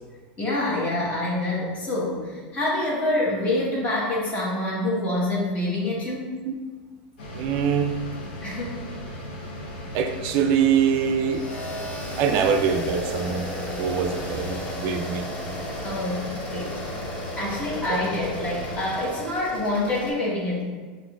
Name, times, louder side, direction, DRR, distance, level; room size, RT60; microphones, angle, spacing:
voice 1, 0.4-6.3 8.4-8.8 15.8-16.8 17.4-20.6, left 1 dB, 25° left, -4 dB, 1.1 m, -26 dB
sound 1, 7.2-19.0, equal, 85° left, 0.8 m, -37 dB
voice 2, 7.3-8.0 9.9-11.4 12.2-13.5 13.8-15.3 17.9-18.0, right 7 dB, 55° right, 5 dB, 0.3 m, -23 dB
sound 2, 11.3-20.1, left 1 dB, 65° left, 1.2 m, -35 dB
5.9 x 2.5 x 2.3 m, 1.4 s
supercardioid pair, 135°, 5 cm